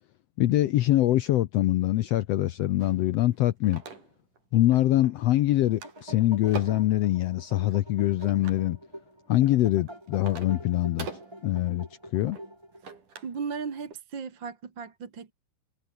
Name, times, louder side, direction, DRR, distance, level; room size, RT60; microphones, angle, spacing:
voice 1, 0.4-3.8 4.5-8.8 9.3-11.1 11.4-11.9 12.1-12.4, left 14 dB, 70° left, 1.6 m, -24 dB
sound 1, 2.8-4.4 4.7-5.3 5.5-7.0 7.7-8.7 9.3-13.4 13.7-13.9, right 5 dB, 85° right, 6.2 m, -43 dB
sound 2, 5.4-13.0, right 1 dB, 5° right, 6.9 m, -46 dB
voice 2, 13.2-15.3, right 5 dB, 40° right, 2.6 m, -36 dB
omnidirectional pair, 3.6 m